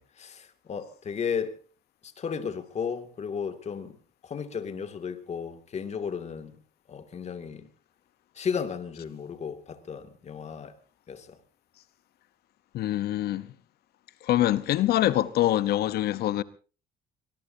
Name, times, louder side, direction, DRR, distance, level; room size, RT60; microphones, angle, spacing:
voice 1, 0.0-1.6 2.0-6.6 6.9-7.7 8.3-10.8 11.1-11.4, left 6 dB, 40° left, 2.4 m, -34 dB
voice 2, 12.7-13.5 14.2-16.4, left 13 dB, 70° left, 1.0 m, -24 dB
23.5 x 21.0 x 2.8 m
cardioid pair, 110°, 17 cm